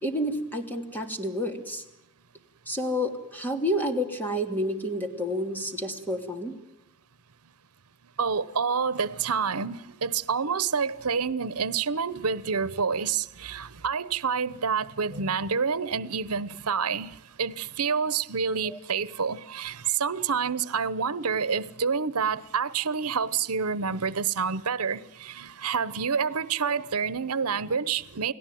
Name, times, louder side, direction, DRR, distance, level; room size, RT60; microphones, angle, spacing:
voice 1, 0.0-1.8 2.7-6.6 18.6-18.8, equal, 10° left, 3.1 m, -29 dB
voice 2, 8.2-28.3, right 6 dB, 85° right, 1.0 m, -28 dB
29.5 x 18.5 x 9.4 m
head